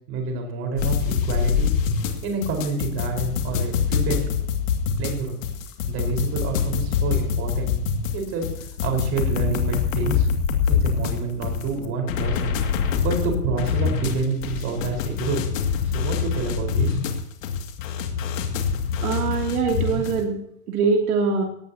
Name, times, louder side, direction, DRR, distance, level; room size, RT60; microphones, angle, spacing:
voice 1, 0.1-1.7 2.2-4.3 5.0-5.4 5.9-7.8 8.1-10.3 10.6-15.4 15.9-17.0 19.0-19.1, right 4 dB, 30° right, 2 dB, 4.6 m, -28 dB
sound 1, 0.8-20.2, left 7 dB, 60° left, 2.4 m, -25 dB
voice 2, 19.0-20.4 20.7-21.4, right 5 dB, 70° right, 1 dB, 2.9 m, -23 dB
19.5 x 16.5 x 2.9 m, 0.70 s
supercardioid pair, 160°, 45 cm